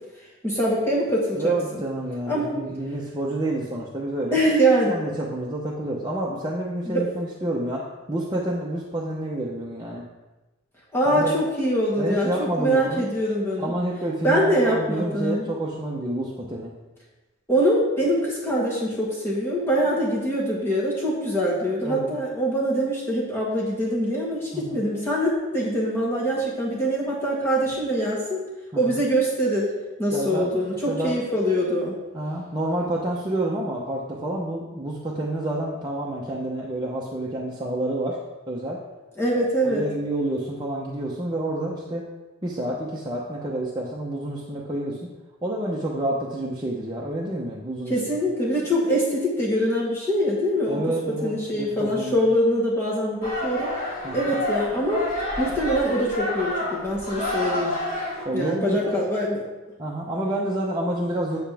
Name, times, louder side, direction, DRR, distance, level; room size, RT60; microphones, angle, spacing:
voice 1, 0.4-1.8 2.3-2.5 4.3-4.9 6.9-7.0 10.9-13.7 14.2-15.5 17.5-28.4 28.7-29.7 30.0-32.0 39.2-39.8 47.9-50.9 51.2-53.7 54.1-55.0 55.4-57.7 58.3-59.4, equal, 10° left, -6 dB, 1.5 m, -23 dB
voice 2, 1.4-4.4 4.9-10.0 11.0-11.4 12.0-13.1 13.6-16.7 21.8-22.2 24.5-24.8 28.7-28.9 30.1-30.5 30.9-31.2 32.1-38.2 38.5-38.8 39.3-42.0 42.4-45.1 45.4-48.0 50.7-52.2 54.0-54.3 58.2-58.9 59.8-61.4, right 1 dB, 20° right, -4 dB, 0.8 m, -29 dB
sound 1, 53.2-58.2, left 1 dB, 35° left, 2.8 m, -29 dB
8.5 x 8.0 x 3.4 m, 1.1 s
head